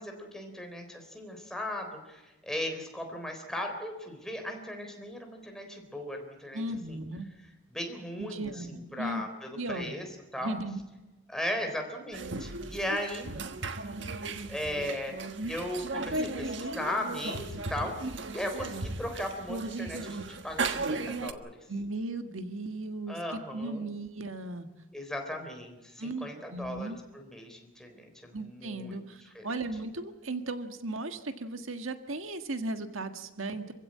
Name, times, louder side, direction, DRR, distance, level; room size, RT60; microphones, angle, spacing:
voice 1, 0.0-7.0 7.7-10.1 10.3-10.5 11.3-13.3 14.5-21.5 23.1-23.9 24.9-29.0 29.3-29.5, left 1 dB, 5° left, 3 dB, 3.7 m, -37 dB
voice 2, 6.5-7.3 8.2-9.2 9.6-9.9 10.4-10.8 21.7-24.7 26.0-27.0 28.3-33.7, right 2 dB, 85° right, 7 dB, 1.7 m, -36 dB
sound 1, 12.1-21.3, right 3 dB, 65° right, 1.4 m, -36 dB
26.0 x 16.0 x 8.7 m, 1.1 s
head